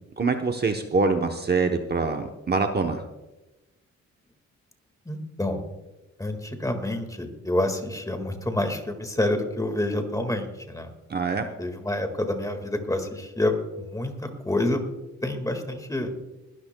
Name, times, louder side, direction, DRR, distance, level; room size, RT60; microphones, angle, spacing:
voice 1, 0.2-3.0 11.1-11.4, right 4 dB, 35° right, 4 dB, 0.9 m, -24 dB
voice 2, 5.1-5.6 6.2-10.9 11.6-14.8 15.2-16.1, left 1 dB, 10° left, 6 dB, 1.8 m, -28 dB
21.0 x 12.5 x 2.2 m, 1.0 s
cardioid pair, 95°, 30 cm